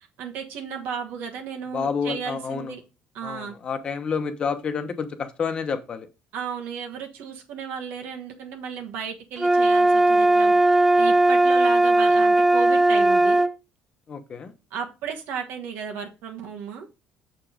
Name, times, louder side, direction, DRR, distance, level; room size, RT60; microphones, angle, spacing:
voice 1, 0.2-2.8 3.1-3.5 6.3-10.5 11.0-13.5 14.7-16.9, right 7 dB, 75° right, 2 dB, 1.4 m, -34 dB
voice 2, 1.7-2.7 3.2-6.1 14.1-14.5, left 6 dB, 30° left, 8 dB, 1.0 m, -29 dB
sound 1, 9.4-13.5, right 2 dB, 5° right, 0.3 m, -18 dB
6.8 x 5.0 x 5.1 m, 0.28 s
cardioid pair, 155°, 3 cm